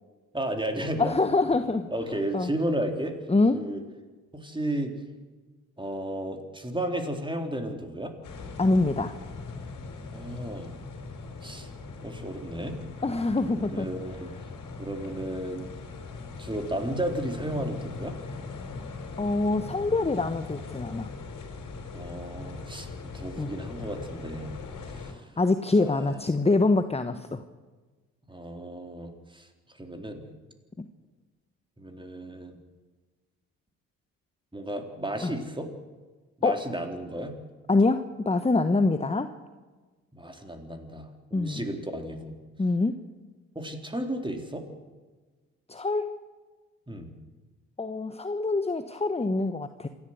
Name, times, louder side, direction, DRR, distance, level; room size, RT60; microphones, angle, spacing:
voice 1, 0.3-1.2 1.9-3.2 3.5-3.8 4.3-5.0 5.8-8.1 10.1-10.7 11.4-11.7 12.0-12.8 13.5-14.3 14.8-15.7 16.4-18.2 21.9-24.5 24.9-25.2 25.8-26.2 28.3-29.5 29.8-30.2 31.8-32.6 34.5-35.7 36.4-37.3 40.1-42.4 43.6-44.6 46.9-47.1, right 1 dB, 15° right, 4 dB, 4.0 m, -33 dB
voice 2, 1.0-1.9 2.3-2.5 3.3-3.6 8.6-9.1 13.0-13.9 19.2-21.1 23.4-23.5 25.4-27.4 30.8-30.9 35.2-35.3 36.4-36.6 37.7-39.3 41.3-41.7 42.6-43.0 45.7-46.1 47.8-49.9, left 3 dB, 15° left, 9 dB, 1.2 m, -25 dB
sound 1, 8.2-25.1, left 4 dB, 55° left, 4.3 m, -40 dB
27.0 x 12.0 x 8.1 m, 1.3 s
hypercardioid pair, 45°, 38 cm